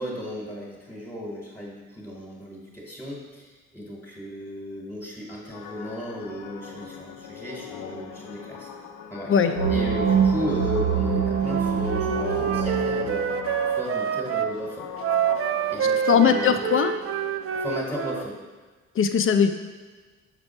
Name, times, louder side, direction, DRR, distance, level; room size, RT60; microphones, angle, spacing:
voice 1, 0.0-8.7 9.1-9.3 9.7-13.3 13.7-14.9 15.7-16.7 17.5-18.4, equal, 5° left, -4 dB, 1.5 m, -35 dB
sound 1, 5.5-18.2, left 7 dB, 90° left, 0.7 m, -39 dB
sound 2, 9.6-13.5, right 7 dB, 70° right, 1.0 m, -24 dB
Wind instrument woodwind instrument, 11.4-14.5 15.0-18.2, right 8 dB, 50° right, 0.4 m, -27 dB
voice 2, 16.1-16.9 19.0-19.5, left 7 dB, 45° left, 8 dB, 0.6 m, -19 dB
6.8 x 4.5 x 4.4 m, 1.4 s
cardioid pair, 90°, 30 cm